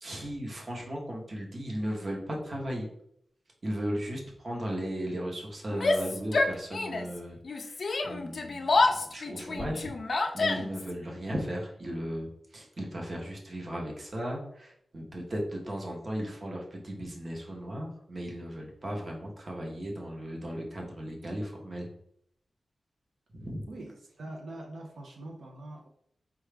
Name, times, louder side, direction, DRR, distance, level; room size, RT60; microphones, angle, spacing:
voice 1, 0.0-2.9 3.6-7.8 8.0-9.9 10.3-21.9 23.3-23.6, equal, 35° right, -1 dB, 0.9 m, -36 dB
Yell, 5.7-7.2 7.4-10.9, left 3 dB, 50° left, 0.4 m, -28 dB
voice 2, 23.7-25.9, right 1 dB, 75° right, 0 dB, 0.6 m, -43 dB
4.7 x 2.3 x 3.3 m, 0.70 s
wide cardioid pair, 175°, 0 cm